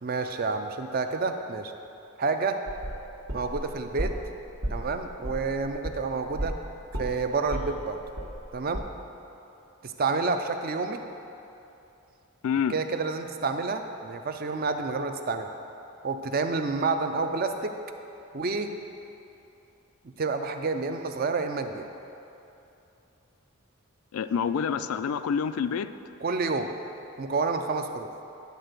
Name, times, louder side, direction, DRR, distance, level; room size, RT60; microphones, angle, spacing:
voice 1, 0.0-1.7 2.2-2.6 3.3-4.1 4.7-6.5 7.0-8.0 8.5-8.8 9.8-11.0 12.7-15.5 16.0-17.7 18.3-18.7 20.2-21.8 26.2-26.7 27.2-28.1, right 4 dB, 40° right, 7 dB, 0.4 m, -29 dB
sound 1, 2.7-4.3 4.6-6.7 6.9-8.5 8.7-8.8, right 1 dB, 65° right, 1.2 m, -34 dB
voice 2, 12.4-12.8 24.1-25.9, left 7 dB, 75° left, 12 dB, 0.3 m, -27 dB
10.5 x 3.9 x 6.6 m, 2.8 s
head